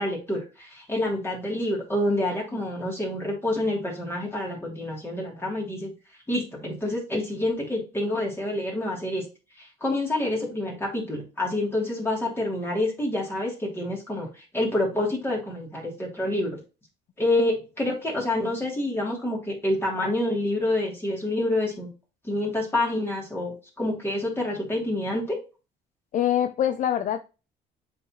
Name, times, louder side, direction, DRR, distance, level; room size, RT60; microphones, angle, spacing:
voice 1, 0.0-5.9 6.3-9.2 9.6-16.6 17.2-21.9 22.2-25.4, left 1 dB, 15° left, 2.9 m, -27 dB
voice 2, 26.1-27.2, left 10 dB, 50° left, 0.5 m, -24 dB
7.5 x 4.2 x 3.0 m
cardioid pair, 110°, 17 cm